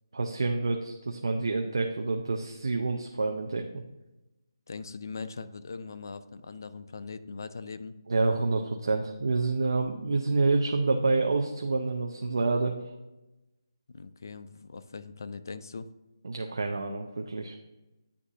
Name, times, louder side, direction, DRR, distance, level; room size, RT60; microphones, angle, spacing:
voice 1, 0.1-3.8 8.1-12.9 16.2-17.6, right 3 dB, 60° right, 3 dB, 0.6 m, -28 dB
voice 2, 4.7-8.0 13.9-15.9, left 4 dB, 45° left, 11 dB, 0.4 m, -41 dB
9.6 x 3.6 x 2.7 m, 1.0 s
figure-of-eight pair, 170°, 3 cm